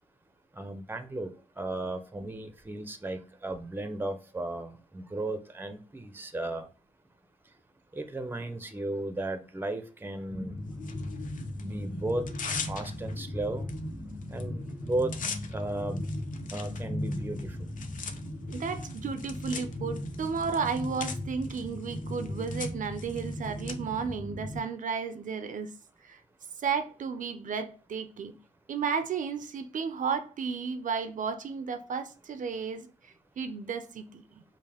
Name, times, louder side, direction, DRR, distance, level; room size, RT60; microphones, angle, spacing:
voice 1, 0.6-1.3 1.6-6.6 7.9-10.5 11.6-12.2 12.7-13.7 14.3-15.1 15.5-16.1 16.5-17.7, right 2 dB, 15° right, 0.6 m, -35 dB
sound 1, 10.3-24.6, left 1 dB, 45° left, 1.1 m, -37 dB
Tearing, 10.8-11.6 12.1-13.2 13.7-13.8 14.1-14.4 14.7-23.7, left 6 dB, 70° left, 0.6 m, -41 dB
voice 2, 18.5-25.7 26.0-26.2 26.6-28.3 28.7-34.4, right 5 dB, 70° right, 0.5 m, -33 dB
5.4 x 2.1 x 3.4 m
cardioid pair, 85°, 14 cm